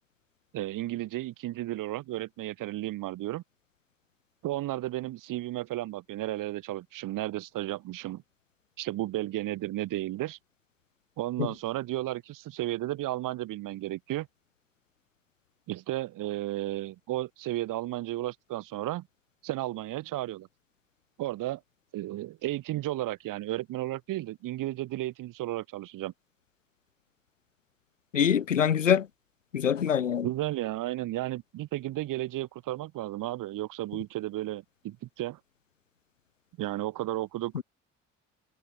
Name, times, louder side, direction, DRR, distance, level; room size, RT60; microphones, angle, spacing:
voice 1, 0.5-3.4 4.4-8.2 8.8-10.4 11.2-14.3 15.7-19.1 19.4-20.5 21.2-21.6 21.9-26.1 29.9-35.4 36.6-37.6, right 16 dB, 60° right, 7.9 m, -33 dB
voice 2, 28.1-29.1 29.5-30.2 37.5-37.6, left 8 dB, 85° left, 1.0 m, -24 dB
figure-of-eight pair, 50°, 37 cm